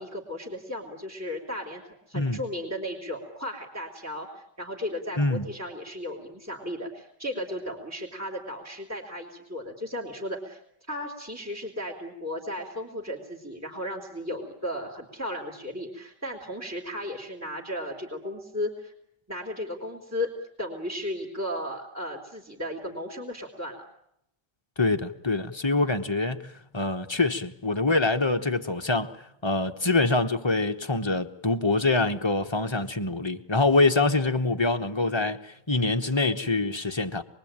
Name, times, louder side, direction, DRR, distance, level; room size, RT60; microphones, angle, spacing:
voice 1, 0.0-10.6 10.9-18.9 19.3-20.3 20.6-23.9, left 1 dB, 10° right, 3.3 m, -35 dB
voice 2, 24.8-26.4 26.7-29.1 29.4-37.2, left 3 dB, 20° left, 1.1 m, -25 dB
28.0 x 22.0 x 9.0 m
omnidirectional pair, 1.8 m